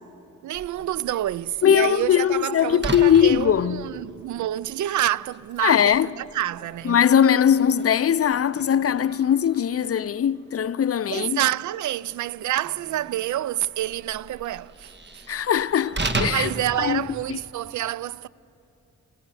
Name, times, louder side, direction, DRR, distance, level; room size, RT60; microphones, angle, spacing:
voice 1, 0.4-7.0 11.1-15.2 16.3-18.3, right 13 dB, 70° right, 0.5 m, -28 dB
Slam, 0.5-17.7, right 2 dB, 35° right, 1.6 m, -37 dB
voice 2, 1.6-3.9 5.6-6.1 6.8-11.4 15.3-16.5 16.8-17.4, left 9 dB, 50° left, 0.6 m, -20 dB
27.5 x 20.0 x 7.1 m
supercardioid pair, 50°, 30 cm